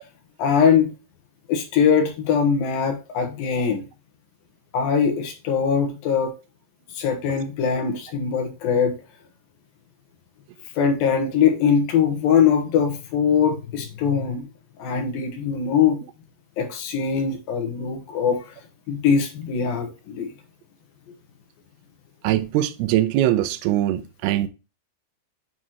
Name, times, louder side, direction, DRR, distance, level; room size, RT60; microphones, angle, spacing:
voice 1, 0.4-0.9 1.5-3.8 4.7-6.3 6.9-9.0 10.8-14.5 14.8-16.0 16.6-18.5 18.9-20.3, left 7 dB, 65° left, 2.6 m, -21 dB
voice 2, 22.2-24.5, right 13 dB, 80° right, 2.4 m, -22 dB
8.9 x 4.7 x 2.9 m
omnidirectional pair, 5.1 m